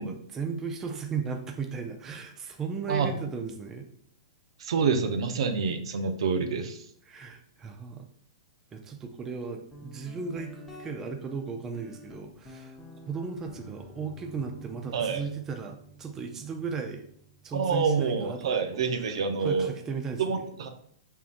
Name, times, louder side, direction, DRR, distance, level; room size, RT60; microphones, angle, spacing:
voice 1, 0.0-3.9 7.1-8.1 8.7-12.8 13.1-17.1 17.4-20.4, right 5 dB, 15° right, 4 dB, 0.4 m, -36 dB
voice 2, 4.6-6.8 14.9-15.2 17.5-19.7 20.2-20.7, right 5 dB, 70° right, 6 dB, 0.7 m, -27 dB
Guitar, 9.7-19.2, right 1 dB, 5° left, 0.8 m, -50 dB
5.6 x 3.6 x 2.5 m, 0.63 s
hypercardioid pair, 150°, 3 cm